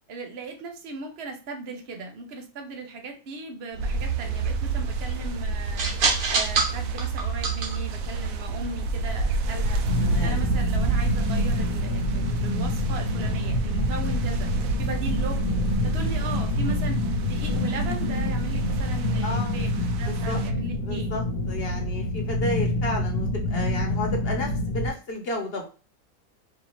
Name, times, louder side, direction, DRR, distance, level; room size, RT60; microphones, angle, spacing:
voice 1, 0.1-5.9 6.3-9.8 10.2-14.5 14.8-15.4 15.8-21.1, right 3 dB, 50° right, 3 dB, 1.0 m, -37 dB
sound 1, 3.7-11.1, right 5 dB, 90° right, 1.5 m, -29 dB
sound 2, 3.8-20.5, right 3 dB, 75° right, 1.0 m, -30 dB
sound 3, 9.9-24.9, left 2 dB, 75° left, 1.2 m, -27 dB
voice 2, 10.0-10.4 19.2-19.5 20.1-20.4 20.8-25.7, left 2 dB, 45° left, 1 dB, 1.2 m, -32 dB
5.0 x 2.7 x 3.0 m, 0.35 s
omnidirectional pair, 1.5 m